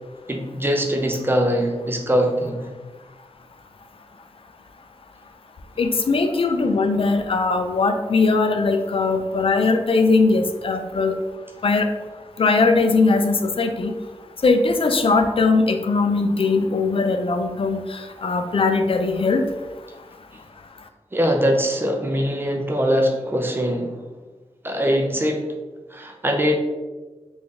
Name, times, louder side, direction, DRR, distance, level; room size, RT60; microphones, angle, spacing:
voice 1, 0.3-2.7 21.1-23.9 24.6-25.4 25.9-26.5, equal, 20° right, 2 dB, 0.6 m, -22 dB
voice 2, 5.8-11.1 11.6-11.9 12.4-13.9 14.4-19.4, left 3 dB, 55° left, 6 dB, 0.4 m, -20 dB
3.7 x 2.5 x 3.4 m, 1.2 s
wide cardioid pair, 85°, 11 cm